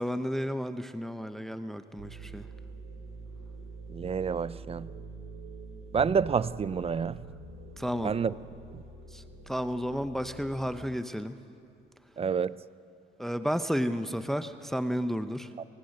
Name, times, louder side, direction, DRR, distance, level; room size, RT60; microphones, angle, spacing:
voice 1, 0.0-2.5 7.8-8.1 9.1-11.4 13.2-15.5, equal, ahead, 0.7 m, -32 dB
sound 1, 2.0-10.8, right 3 dB, 75° right, 2.6 m, -45 dB
voice 2, 3.9-4.9 5.9-7.2 8.0-8.3 12.2-12.6 15.6-15.7, right 6 dB, 30° right, 0.5 m, -28 dB
24.5 x 19.5 x 6.6 m
cardioid pair, 90°, 20 cm